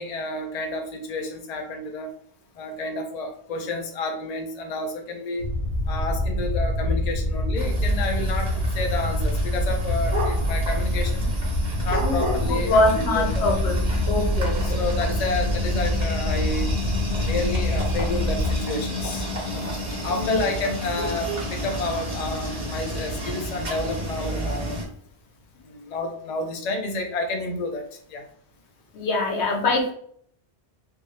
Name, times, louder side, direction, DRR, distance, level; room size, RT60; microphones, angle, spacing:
voice 1, 0.0-2.1 2.6-5.4 5.9-11.3 11.8-13.5 14.6-16.7 17.2-19.2 19.5-19.7 20.0-24.8 25.7-27.8 28.1-28.2, left 2 dB, 45° left, 2 dB, 0.7 m, -30 dB
sound 1, 5.4-18.6, equal, 5° right, 1.1 m, -25 dB
sound 2, 7.6-24.8, equal, 45° right, 1.1 m, -31 dB
voice 2, 12.4-13.7 14.1-14.8 20.1-20.4 28.9-29.9, left 2 dB, 80° left, 2 dB, 1.1 m, -23 dB
3.4 x 2.7 x 3.1 m, 0.62 s
omnidirectional pair, 1.1 m